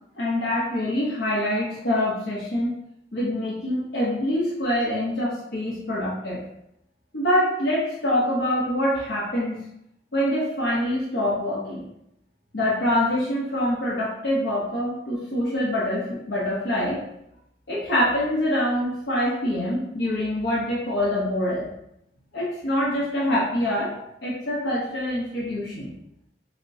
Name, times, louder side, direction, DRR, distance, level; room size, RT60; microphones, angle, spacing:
voice 1, 0.2-2.8 3.1-6.4 7.1-9.6 10.1-11.9 12.5-17.0 17.7-21.7 22.3-23.9 24.2-25.9, left 1 dB, 80° left, -7 dB, 0.8 m, -25 dB
5.8 x 2.1 x 2.7 m, 0.80 s
head